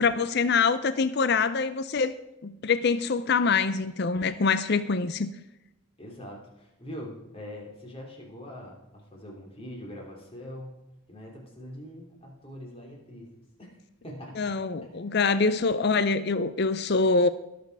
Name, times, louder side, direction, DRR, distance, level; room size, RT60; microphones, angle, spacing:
voice 1, 0.0-2.1 2.4-5.3 14.4-17.3, left 4 dB, 50° left, 13 dB, 0.5 m, -24 dB
voice 2, 6.0-10.7 11.1-13.8 14.0-14.5 14.9-15.0, equal, 25° left, 0 dB, 3.1 m, -43 dB
20.0 x 6.9 x 4.8 m, 0.91 s
head